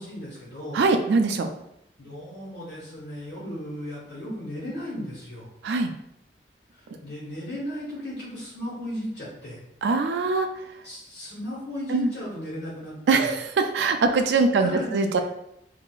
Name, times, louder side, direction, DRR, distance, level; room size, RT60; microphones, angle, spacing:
voice 1, 0.0-0.9 2.0-5.5 7.0-9.6 10.8-13.3 14.5-15.1, equal, 70° left, -9 dB, 1.4 m, -35 dB
voice 2, 0.7-1.5 5.6-5.9 9.8-10.5 11.9-12.1 13.1-15.2, right 4 dB, 80° right, 6 dB, 0.3 m, -22 dB
3.8 x 2.7 x 2.4 m, 0.79 s
head